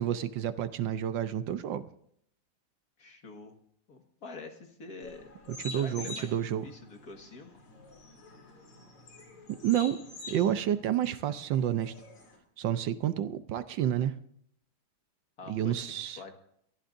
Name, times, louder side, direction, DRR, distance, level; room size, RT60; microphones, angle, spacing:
voice 1, 0.0-1.9 5.6-6.7 9.5-10.0 10.3-11.9 12.6-14.1 15.5-16.2, right 10 dB, 70° right, 11 dB, 1.3 m, -29 dB
voice 2, 3.0-3.5 3.9-5.3 5.8-7.5 15.4-15.9 16.2-16.3, left 4 dB, 50° left, 4 dB, 2.1 m, -46 dB
sound 1, 5.0-12.4, left 2 dB, 85° left, 3.7 m, -47 dB
22.5 x 14.5 x 2.6 m, 0.69 s
omnidirectional pair, 2.2 m